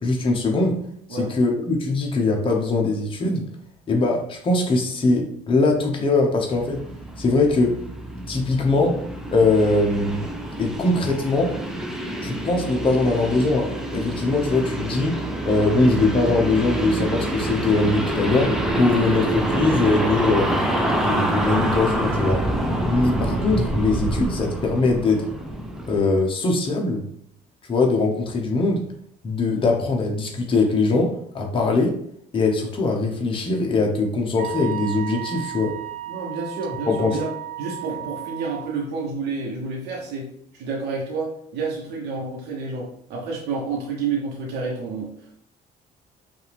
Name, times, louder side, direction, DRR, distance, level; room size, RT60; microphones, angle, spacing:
voice 1, 0.0-0.8 1.1-3.5 3.9-6.8 7.2-7.8 8.3-9.0 9.3-10.3 10.6-11.6 12.2-15.2 15.4-20.5 20.9-22.4 22.9-25.2 25.9-27.0 27.7-28.8 29.2-32.0 32.3-35.8 36.9-37.2, left 3 dB, 30° left, 1 dB, 0.9 m, -21 dB
sound 1, 6.5-26.1, right 1 dB, 5° right, 0.6 m, -26 dB
Wind instrument woodwind instrument, 34.4-38.8, right 13 dB, 55° right, 0.6 m, -34 dB
voice 2, 36.1-37.3 37.6-45.1, right 4 dB, 80° right, -3 dB, 1.1 m, -29 dB
5.4 x 2.6 x 3.4 m, 0.67 s
cardioid pair, 110°, 17 cm